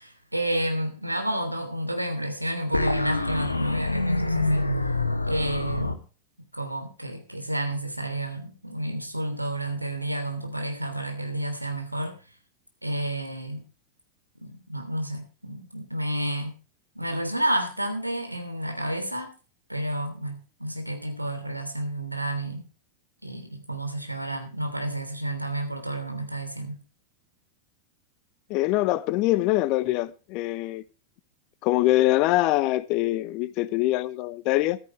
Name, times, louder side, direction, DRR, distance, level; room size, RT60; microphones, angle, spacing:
voice 1, 0.0-4.7 5.3-6.0 6.5-12.2 12.8-13.6 14.4-16.6 16.9-19.3 19.7-22.6 23.2-26.8, right 1 dB, 85° right, 3.2 m, -30 dB
sound 1, 2.7-5.9, left 2 dB, 85° left, 1.6 m, -26 dB
voice 2, 28.5-30.8 31.6-34.8, left 17 dB, 40° left, 0.8 m, -24 dB
14.5 x 13.5 x 3.3 m
figure-of-eight pair, 90°, 0 cm